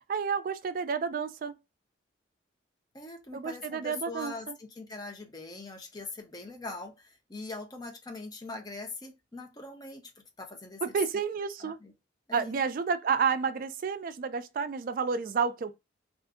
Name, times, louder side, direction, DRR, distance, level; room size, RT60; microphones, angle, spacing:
voice 1, 0.1-1.5 3.3-4.6 10.8-11.8 12.3-15.8, right 6 dB, 50° right, 0.3 m, -30 dB
voice 2, 2.9-10.8 11.6-11.9 12.3-12.6, left 2 dB, 20° left, 0.7 m, -42 dB
2.6 x 2.5 x 3.4 m
head